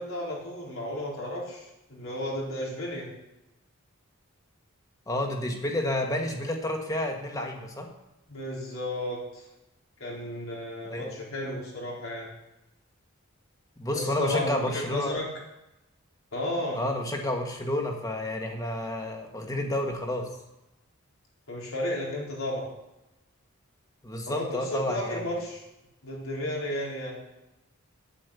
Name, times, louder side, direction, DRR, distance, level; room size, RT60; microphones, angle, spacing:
voice 1, 0.0-3.1 8.3-9.5 10.0-12.3 13.9-15.3 16.3-16.8 21.5-22.7 24.3-25.6 26.0-27.2, left 1 dB, 70° left, -3 dB, 4.1 m, -33 dB
voice 2, 5.1-7.9 10.9-11.2 13.8-15.2 16.7-20.3 24.0-25.2, left 1 dB, 15° left, 2 dB, 1.5 m, -30 dB
8.6 x 8.5 x 8.2 m, 0.94 s
head